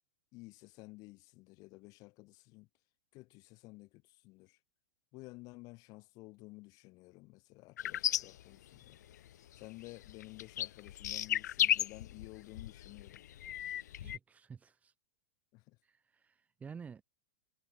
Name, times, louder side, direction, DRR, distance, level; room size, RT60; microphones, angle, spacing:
voice 1, 0.3-2.7 3.1-4.6 5.1-9.0 9.6-13.2 15.5-15.8, left 23 dB, 40° left, 7.1 m, -53 dB
sound 1, 7.8-9.3 9.5-14.2, left 12 dB, 75° left, 0.9 m, -35 dB
voice 2, 13.9-14.9 15.8-17.0, right 6 dB, 15° right, 3.4 m, -51 dB
hypercardioid pair, 135°, 9 cm